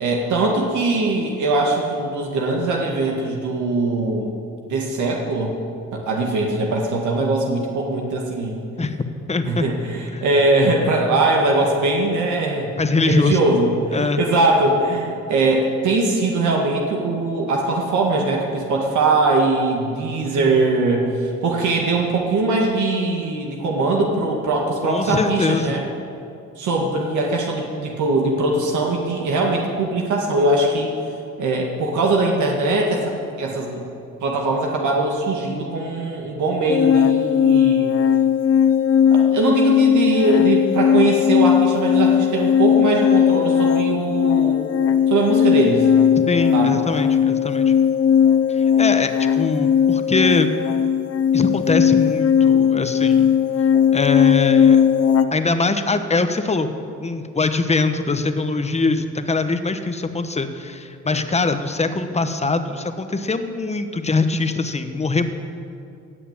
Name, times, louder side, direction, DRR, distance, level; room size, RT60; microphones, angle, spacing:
voice 1, 0.0-4.3 4.6-5.6 5.9-8.6 9.5-12.7 13.1-25.8 26.6-30.9 31.4-33.0 33.4-33.8 34.2-38.0 39.1-44.6 45.1-45.9 46.5-46.8, right 2 dB, 75° right, 0 dB, 2.0 m, -21 dB
voice 2, 9.3-9.7 10.1-10.2 12.8-13.4 13.9-14.2 24.8-25.8 46.3-47.7 48.5-50.5 51.3-53.3 53.9-54.8 55.3-56.7 57.0-65.4, left 3 dB, 20° left, 8 dB, 1.1 m, -22 dB
sound 1, 36.7-55.3, left 8 dB, 50° left, 0.8 m, -17 dB
17.0 x 6.8 x 9.0 m, 2.6 s
cardioid pair, 90°, 30 cm